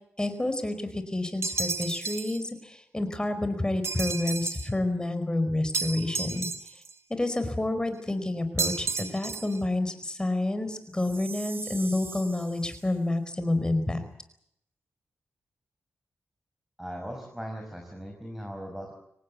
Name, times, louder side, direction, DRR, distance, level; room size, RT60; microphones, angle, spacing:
voice 1, 0.2-6.5 7.1-14.0, left 2 dB, 15° left, 9 dB, 4.8 m, -29 dB
sound 1, 1.4-2.4 3.8-4.7 5.7-6.9 8.6-9.6, right 4 dB, 70° right, 1.5 m, -32 dB
Chime, 10.9-12.9, right 4 dB, 50° right, 3.5 m, -42 dB
voice 2, 16.8-18.9, equal, 5° right, 2 dB, 5.8 m, -38 dB
25.0 x 18.5 x 8.4 m, 0.73 s
cardioid pair, 80°, 5 cm